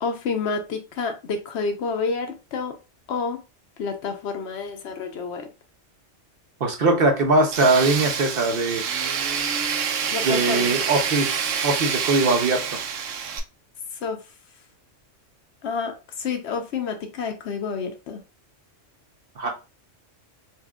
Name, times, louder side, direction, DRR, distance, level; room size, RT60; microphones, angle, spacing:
voice 1, 0.0-2.8 3.1-3.4 3.8-5.5 10.1-10.8 14.0-14.2 15.6-18.2, left 5 dB, 65° left, 0.8 m, -29 dB
voice 2, 6.6-8.8 10.2-12.8 19.4-19.5, right 2 dB, 55° right, 0.8 m, -21 dB
Tools, 7.5-13.4, right 7 dB, 80° right, 0.9 m, -27 dB
4.3 x 2.4 x 2.2 m
omnidirectional pair, 1.3 m